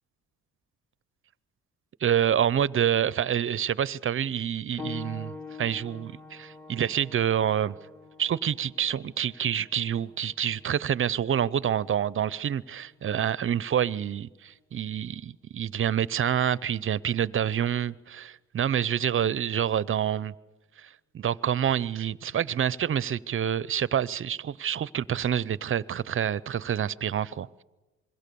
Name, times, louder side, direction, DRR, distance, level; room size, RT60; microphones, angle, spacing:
voice 1, 2.0-5.3 5.6-7.8 8.2-20.3 20.8-27.5, right 9 dB, 45° right, 0.7 m, -27 dB
sound 1, 4.8-15.0 16.0-16.1 16.8-16.9, left 3 dB, 5° left, 1.4 m, -47 dB
26.0 x 22.5 x 7.0 m
cardioid pair, 90°, 30 cm